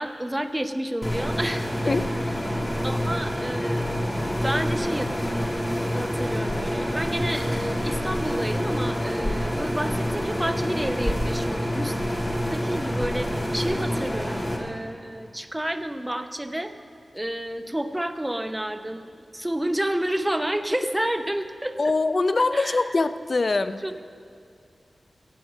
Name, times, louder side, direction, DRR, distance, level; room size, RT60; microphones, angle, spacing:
voice 1, 0.0-1.7 2.5-2.6 2.8-4.1 4.4-5.1 5.9-12.0 12.5-16.7 17.1-21.8 22.5-22.9 23.8-23.9, right 1 dB, 10° right, 8 dB, 0.8 m, -30 dB
sound 1, 1.0-14.6, equal, 15° left, 2.1 m, -27 dB
voice 2, 21.8-23.8, left 3 dB, 45° left, 11 dB, 0.5 m, -23 dB
14.0 x 7.7 x 9.1 m, 2.5 s
wide cardioid pair, 100°, 0 cm